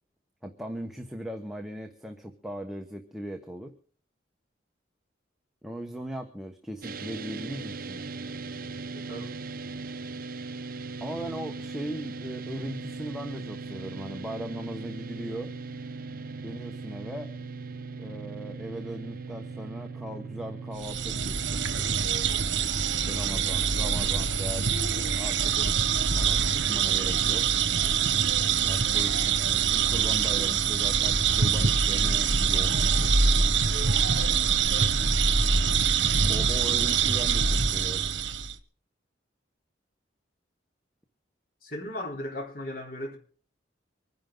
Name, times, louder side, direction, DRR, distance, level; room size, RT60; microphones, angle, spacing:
voice 1, 0.4-3.7 5.6-8.0 11.0-15.5 16.4-17.3 18.0-21.7 23.0-27.5 28.6-33.6 36.3-38.1, right 1 dB, ahead, 1.1 m, -39 dB
sound 1, 6.8-22.0, right 4 dB, 50° right, 0.7 m, -39 dB
voice 2, 8.9-9.4 34.7-35.0 41.6-43.2, left 1 dB, 50° left, 3.6 m, -37 dB
sound 2, 20.8-38.5, right 6 dB, 75° right, 1.3 m, -24 dB
25.5 x 10.5 x 3.8 m
head